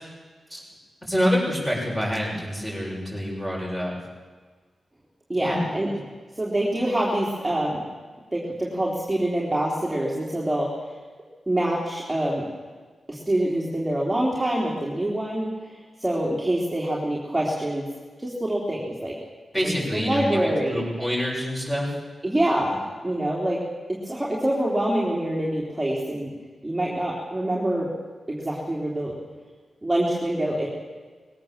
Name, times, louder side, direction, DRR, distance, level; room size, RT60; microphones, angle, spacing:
voice 1, 1.0-3.9 5.4-5.6 19.5-21.9, equal, 10° left, -3 dB, 7.5 m, -26 dB
voice 2, 5.3-5.9 6.4-7.8 8.3-10.9 11.5-12.5 13.1-17.9 18.2-19.2 19.6-20.8 22.2-23.6 23.9-26.3 26.6-27.9 28.3-29.2 29.8-30.7, right 1 dB, 10° right, -4 dB, 3.5 m, -25 dB
20.5 x 17.0 x 7.5 m, 1.5 s
wide cardioid pair, 105°, 0 cm